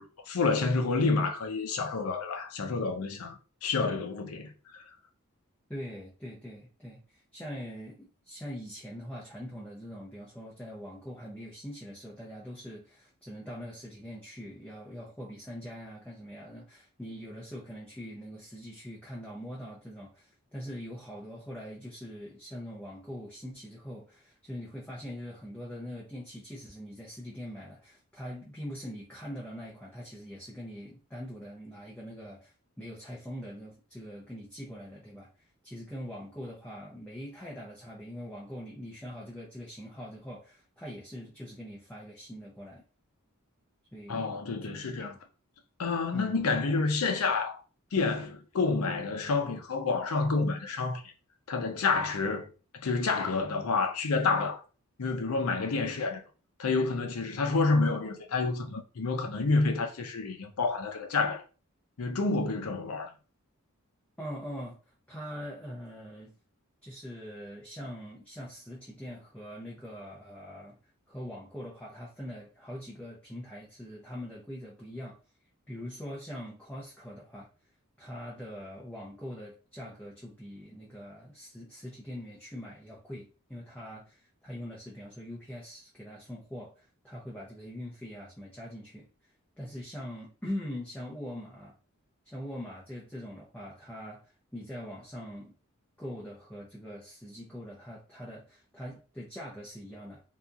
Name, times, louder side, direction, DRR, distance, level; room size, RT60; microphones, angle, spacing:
voice 1, 0.0-4.5 44.1-45.1 45.8-47.6 47.9-51.0 51.5-52.5 52.7-54.6 55.0-56.2 56.6-61.4 62.0-63.1, left 3 dB, 80° left, 0.6 m, -29 dB
voice 2, 5.7-35.3 35.6-42.8 43.9-45.2 46.1-46.4 64.2-64.8 65.1-66.4 66.8-70.8 71.1-75.2 75.7-77.5 78.0-89.1 89.6-91.7 92.2-95.5 96.0-100.2, equal, 5° left, 0.5 m, -43 dB
2.8 x 2.4 x 2.3 m
head